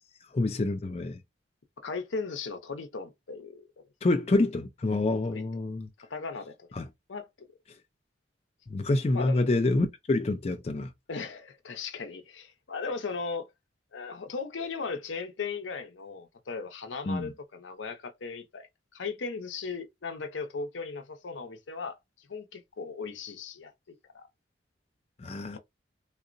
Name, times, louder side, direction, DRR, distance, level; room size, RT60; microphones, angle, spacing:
voice 1, 0.3-1.2 4.0-5.9 6.7-6.9 8.7-10.9 17.1-17.3 25.2-25.6, left 2 dB, 35° left, 0.4 m, -27 dB
voice 2, 1.8-3.7 5.3-5.4 6.0-6.7 7.1-7.5 9.1-9.4 11.1-13.5 13.9-18.7 18.9-24.3 25.5-25.6, left 4 dB, 85° left, 0.6 m, -37 dB
3.7 x 2.0 x 2.5 m
head